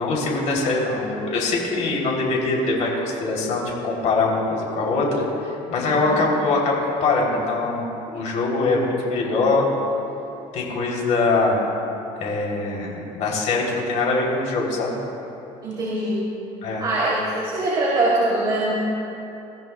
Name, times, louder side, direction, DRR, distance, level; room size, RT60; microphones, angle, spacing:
voice 1, 0.0-9.6 10.5-11.7 12.2-14.9 16.6-16.8, left 3 dB, 60° left, -2 dB, 3.4 m, -23 dB
voice 2, 5.8-6.1 15.6-16.2 16.8-18.8, right 2 dB, 30° right, -7 dB, 3.1 m, -23 dB
22.5 x 15.5 x 2.3 m, 2.9 s
cardioid pair, 145°, 14 cm